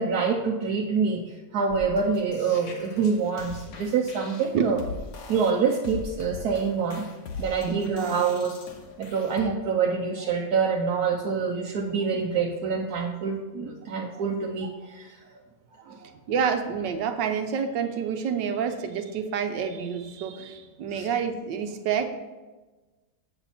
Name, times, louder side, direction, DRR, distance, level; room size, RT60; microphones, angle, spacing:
voice 1, 0.0-4.8 5.3-7.0 7.4-8.6 9.0-15.1 15.9-16.0 20.9-21.1, right 5 dB, 65° right, 0 dB, 1.2 m, -26 dB
sound 1, 1.7-9.4, left 4 dB, 85° left, 1.7 m, -41 dB
voice 2, 7.7-8.3 16.3-22.1, right 7 dB, 80° right, 7 dB, 1.5 m, -28 dB
7.9 x 7.1 x 4.2 m, 1.2 s
omnidirectional pair, 1.9 m